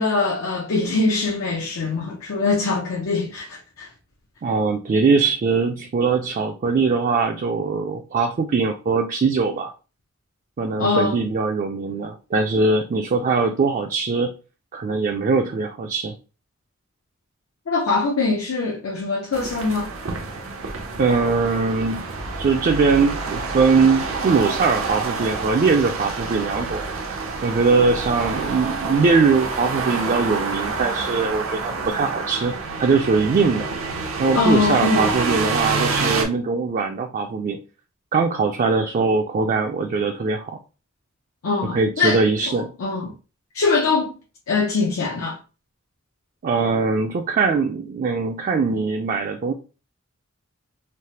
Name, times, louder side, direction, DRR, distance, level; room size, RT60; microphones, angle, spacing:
voice 1, 0.0-3.9 10.8-11.2 17.7-19.9 34.3-35.2 41.4-43.1 43.5-44.1 44.5-45.4, left 3 dB, 85° left, 0.6 m, -22 dB
voice 2, 4.4-9.7 10.6-14.3 14.7-16.1 21.0-22.1 22.4-26.8 27.4-32.5 32.8-33.7 34.2-37.6 38.1-40.6 41.6-42.7 46.4-49.5, right 4 dB, 40° right, 0.3 m, -21 dB
sound 1, 19.3-36.3, right 4 dB, 85° right, 0.6 m, -28 dB
3.2 x 2.0 x 2.7 m
head